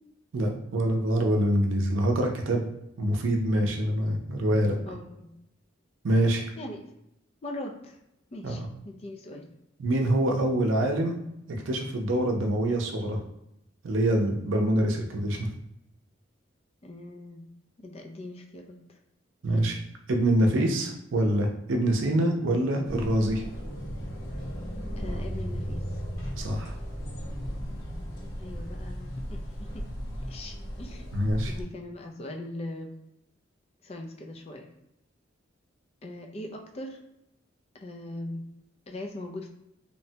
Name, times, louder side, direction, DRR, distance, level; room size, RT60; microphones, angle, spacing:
voice 1, 0.3-2.7 3.0-4.8 6.0-6.5 8.4-8.6 9.8-11.1 11.5-13.2 13.8-15.5 19.4-19.8 20.1-23.4 26.4-26.7 31.1-31.5, right 1 dB, 85° right, 2 dB, 0.5 m, -25 dB
voice 2, 4.8-5.3 6.6-6.9 7.4-8.0 8.3-9.4 16.8-17.4 17.8-19.0 25.0-25.8 28.4-29.7 30.3-31.1 31.5-32.9 33.8-34.7 36.0-37.0 37.8-38.4 38.9-39.5, left 1 dB, 35° left, 2 dB, 0.4 m, -40 dB
sound 1, 22.8-31.6, equal, 90° left, 0.8 m, -36 dB
2.9 x 2.1 x 2.7 m, 0.84 s
head